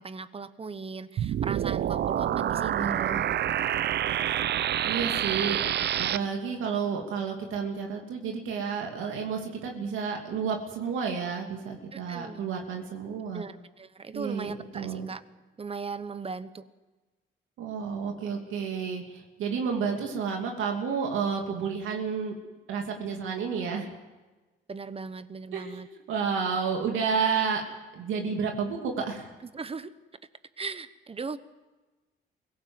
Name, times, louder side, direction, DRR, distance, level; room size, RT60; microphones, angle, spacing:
voice 1, 0.0-3.2 3.5-3.7 11.9-12.4 13.3-15.2 15.6-16.7 24.7-25.9 29.4-29.9 30.6-31.4, right 4 dB, 30° right, 13 dB, 1.2 m, -38 dB
sound 1, 1.2-6.2, right 10 dB, 60° right, 0.6 m, -27 dB
voice 2, 2.1-3.2 4.8-5.7 6.0-13.4 14.1-15.1 17.6-22.3 22.7-23.9 25.5-27.6 27.9-29.3, right 6 dB, 85° right, 1 dB, 2.8 m, -31 dB
23.5 x 17.0 x 7.9 m, 1.2 s
cardioid pair, 90°, 20 cm